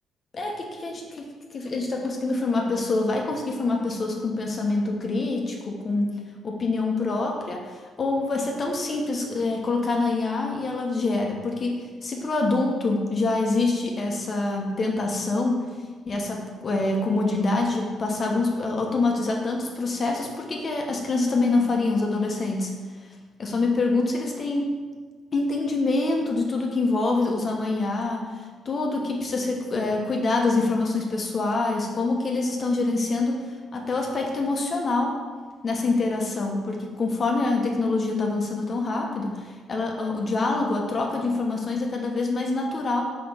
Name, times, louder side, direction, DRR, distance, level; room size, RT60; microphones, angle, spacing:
voice 1, 0.3-6.1 6.4-15.6 16.1-22.7 23.4-24.8 25.3-28.3 28.6-35.2 35.6-43.0, left 3 dB, 40° left, 0 dB, 1.2 m, -25 dB
5.1 x 5.0 x 5.8 m, 1.4 s
cardioid pair, 90°, 0 cm